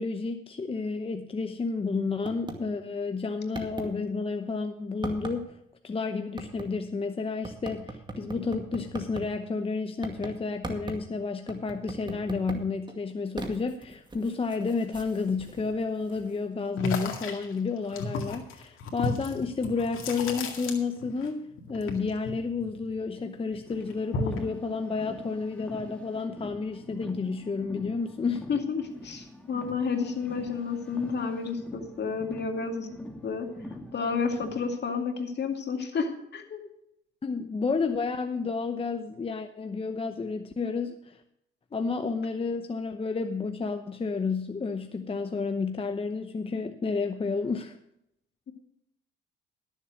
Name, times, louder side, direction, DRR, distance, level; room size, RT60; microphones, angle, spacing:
voice 1, 0.0-5.5 5.8-28.4 37.2-41.2 41.7-47.8, left 4 dB, 25° left, 7 dB, 0.9 m, -31 dB
sound 1, 2.2-2.6 3.0-3.1 3.5-3.9 5.0-5.4 6.4-6.7 7.4-9.2 10.0-10.3 10.6-11.0 11.5-12.6 12.9-16.6 16.9-17.0, right 2 dB, 20° right, 2.1 m, -39 dB
sound 2, 16.8-21.3 21.5-23.2 23.5-24.5, left 3 dB, 75° left, 2.1 m, -34 dB
Car, 23.6-34.8, left 1 dB, 5° left, 2.5 m, -44 dB
voice 2, 28.5-32.9 33.2-33.5 33.9-36.6 48.5-48.6, left 5 dB, 55° left, 4 dB, 2.3 m, -31 dB
12.5 x 7.3 x 6.2 m, 0.79 s
supercardioid pair, 75°, 21 cm